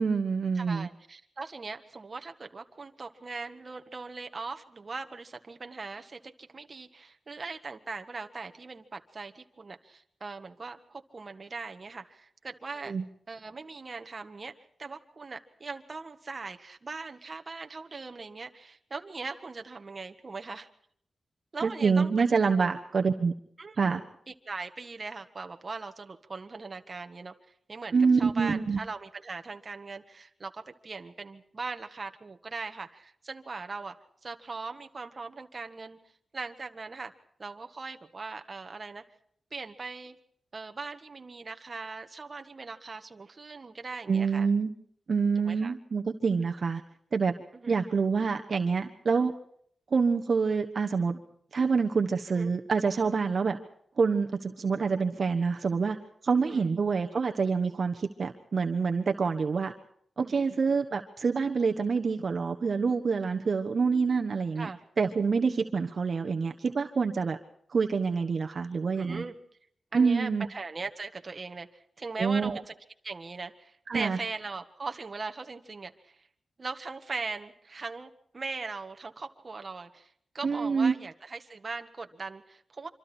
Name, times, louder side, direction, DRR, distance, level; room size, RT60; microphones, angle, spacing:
voice 1, 0.0-0.9 12.8-13.0 21.6-23.3 23.8-24.0 27.9-28.8 44.1-44.7 45.1-46.8 47.1-47.3 47.7-49.3 49.9-51.2 51.5-53.6 54.0-56.0 56.2-59.7 60.2-64.7 65.0-67.4 67.7-69.2 69.9-70.5 72.2-72.6 73.9-74.2 80.4-80.9, right 5 dB, 50° right, 5 dB, 1.2 m, -26 dB
voice 2, 0.6-12.9 13.3-14.5 14.8-20.7 21.5-22.3 22.6-22.7 23.6-27.3 27.7-33.9 34.2-36.0 36.3-37.1 37.4-39.0 39.5-40.2 40.5-44.5 45.4-45.7 47.5-47.8 52.3-52.5 56.4-56.7 64.6-64.8 68.9-69.3 69.9-72.7 73.0-76.2 76.6-82.9, right 4 dB, 35° right, 6 dB, 1.5 m, -40 dB
26.0 x 25.5 x 4.4 m, 0.64 s
wide cardioid pair, 140°, 0 cm